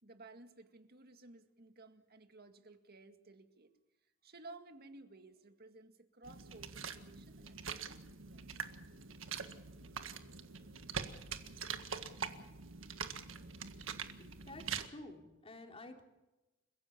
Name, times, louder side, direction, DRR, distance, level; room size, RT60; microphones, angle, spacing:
voice 1, 0.0-3.7 4.2-8.5, right 2 dB, 50° right, 8 dB, 2.1 m, -56 dB
sound 1, 6.2-14.9, right 6 dB, 75° right, 1.7 m, -44 dB
voice 2, 14.2-16.0, left 2 dB, 30° left, 3 dB, 3.5 m, -51 dB
30.0 x 16.0 x 7.2 m, 1.0 s
head